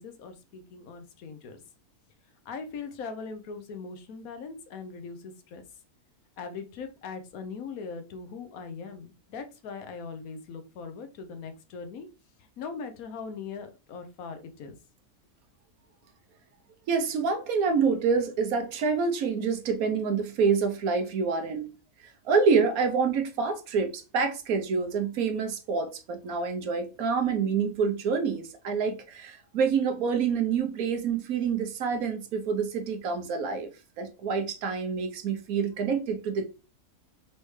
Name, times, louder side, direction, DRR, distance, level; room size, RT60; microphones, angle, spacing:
voice 1, 0.0-1.6 2.4-5.6 6.4-12.1 12.4-14.8, left 5 dB, 65° left, 1.2 m, -40 dB
voice 2, 16.9-21.7 22.2-33.7 34.0-36.5, right 5 dB, 65° right, 1.2 m, -27 dB
4.2 x 3.4 x 3.2 m
omnidirectional pair, 1.7 m